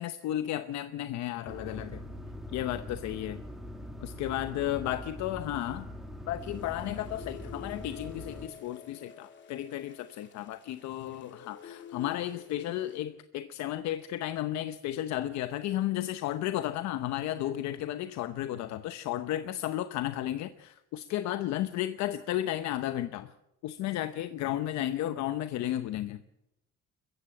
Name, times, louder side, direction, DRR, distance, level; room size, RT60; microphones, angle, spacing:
voice 1, 0.0-2.0 2.5-3.4 4.0-5.9 6.3-23.3 23.6-26.2, left 13 dB, 70° left, 11 dB, 0.9 m, -33 dB
sound 1, 1.5-8.5, left 1 dB, ahead, 2.5 m, -43 dB
sound 2, 6.4-13.0, left 9 dB, 40° left, 2.7 m, -49 dB
22.5 x 15.0 x 7.8 m, 0.88 s
cardioid pair, 155°, 29 cm